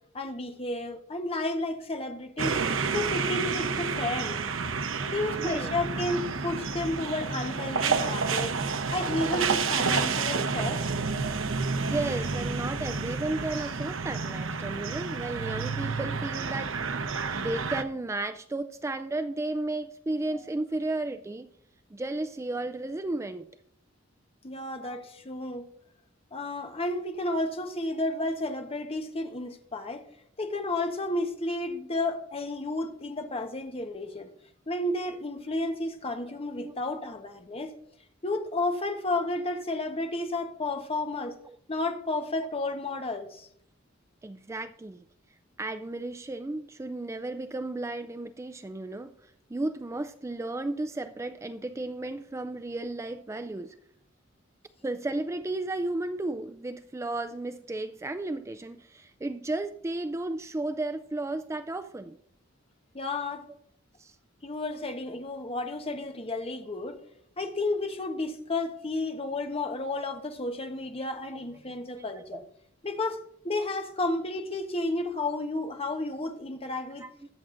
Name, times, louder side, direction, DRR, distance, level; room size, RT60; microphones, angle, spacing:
voice 1, 0.1-2.6 2.9-4.4 5.1-8.6 8.9-10.9 24.4-25.7 26.3-30.1 30.4-34.3 34.7-37.7 38.2-41.4 41.7-43.5 62.9-63.5 64.4-67.0 67.4-72.4 72.8-77.1, left 2 dB, 30° left, 1.0 m, -32 dB
sound 1, 2.4-17.8, right 5 dB, 85° right, 0.8 m, -30 dB
voice 2, 5.4-5.7 11.8-21.5 21.9-23.5 24.8-25.0 36.6-36.7 41.5-41.6 44.2-45.0 45.6-53.8 54.8-62.2 64.0-64.2 71.7-72.4 77.0-77.1, right 2 dB, 15° right, 0.3 m, -34 dB
21.5 x 7.4 x 2.6 m
head